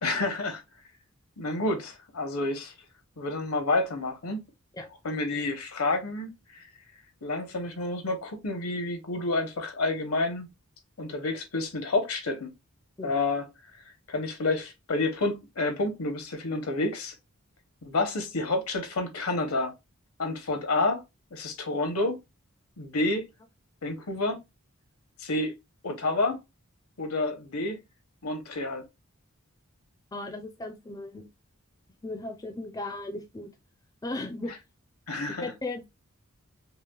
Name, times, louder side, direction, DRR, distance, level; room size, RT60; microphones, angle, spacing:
voice 1, 0.0-0.6 1.4-2.7 3.2-4.4 5.0-6.7 7.2-10.5 11.0-12.5 13.0-13.5 14.1-17.1 17.8-19.7 20.2-21.0 21.3-22.2 22.8-23.3 23.8-24.4 25.2-25.5 25.8-26.4 27.0-27.8 28.2-28.8 35.1-35.5, left 2 dB, 75° left, 0.9 m, -29 dB
voice 2, 30.1-31.3 32.0-33.5 34.0-34.5 35.3-35.8, left 2 dB, 15° left, 0.4 m, -36 dB
5.4 x 2.1 x 2.3 m
head